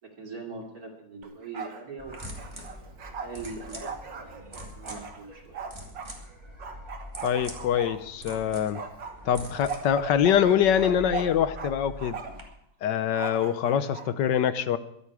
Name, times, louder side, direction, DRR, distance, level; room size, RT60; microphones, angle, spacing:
voice 1, 0.0-2.9 3.2-5.6, right 3 dB, 50° right, 1 dB, 3.1 m, -42 dB
Bark, 1.2-1.8 2.1-6.1 6.6-8.4 8.7-11.7 12.0-12.5 13.1-14.1, right 5 dB, 70° right, 2.3 m, -38 dB
sound 1, 2.0-12.4, equal, 15° right, 2.5 m, -44 dB
voice 2, 7.2-8.8 9.2-12.2 12.8-14.8, left 9 dB, 70° left, 13 dB, 1.4 m, -24 dB
23.5 x 8.5 x 4.8 m, 0.76 s
omnidirectional pair, 2.1 m